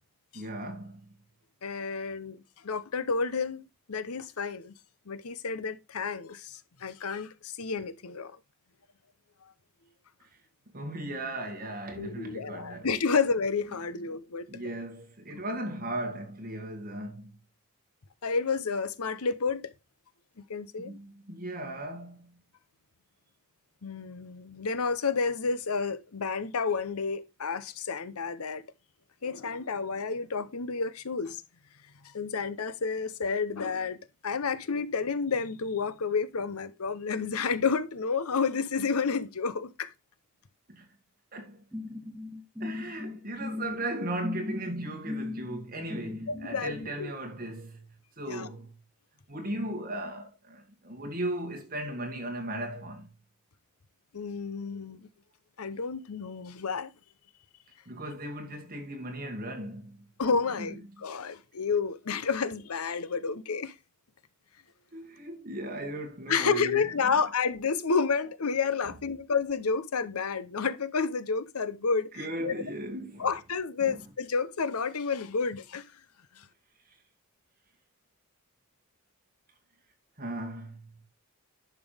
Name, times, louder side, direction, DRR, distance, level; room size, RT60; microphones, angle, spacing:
voice 1, 0.3-1.1 10.7-12.9 14.5-17.3 20.8-22.3 40.7-40.9 41.3-41.6 42.6-47.9 48.2-48.7 49.3-53.1 57.9-60.0 60.6-60.7 64.9-67.2 72.1-73.3 73.8-74.0 80.2-80.9, right 1 dB, 40° right, 2.4 m, -37 dB
voice 2, 1.6-4.7 5.1-8.3 12.0-14.5 18.2-19.7 20.5-21.0 23.8-28.6 29.2-31.4 32.1-34.0 34.2-39.9 46.3-47.1 48.3-48.5 54.1-55.1 55.6-56.9 60.2-63.7 66.3-72.1 72.4-72.5 73.2-75.8 76.4-76.5, left 5 dB, 80° left, 0.8 m, -30 dB
sound 1, 41.7-46.5, left 2 dB, 5° right, 0.8 m, -38 dB
11.0 x 5.9 x 3.4 m
head